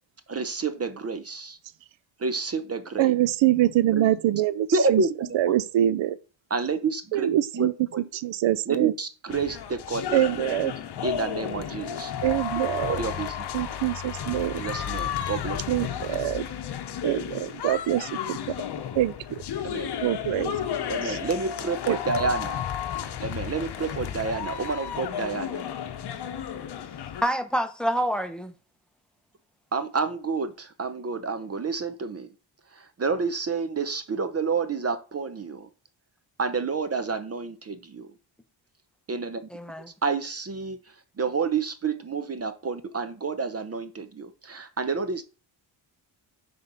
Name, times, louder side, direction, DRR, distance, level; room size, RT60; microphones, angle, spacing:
voice 1, 0.3-1.6 2.2-3.1 3.9-4.1 4.7-5.5 6.5-8.1 8.6-10.2 11.0-12.1 12.9-13.4 14.6-15.6 19.6-19.9 20.9-22.6 23.2-25.7 29.7-32.3 32.7-35.7 36.4-38.1 39.1-39.4 40.0-40.8 41.2-45.2, right 4 dB, 30° right, 0.7 m, -29 dB
voice 2, 3.0-5.0 5.3-6.2 7.1-8.9 10.1-10.7 12.2-13.0 13.5-14.7 15.7-16.5 17.0-18.5 18.9-19.4 20.0-20.5 21.0-21.2 21.9-22.0, right 13 dB, 70° right, 0.6 m, -25 dB
sound 1, 9.3-27.2, left 9 dB, 55° left, 0.8 m, -33 dB
voice 3, 27.2-28.5 39.5-39.9, equal, ahead, 0.8 m, -27 dB
5.7 x 3.5 x 5.4 m
cardioid pair, 85°, 47 cm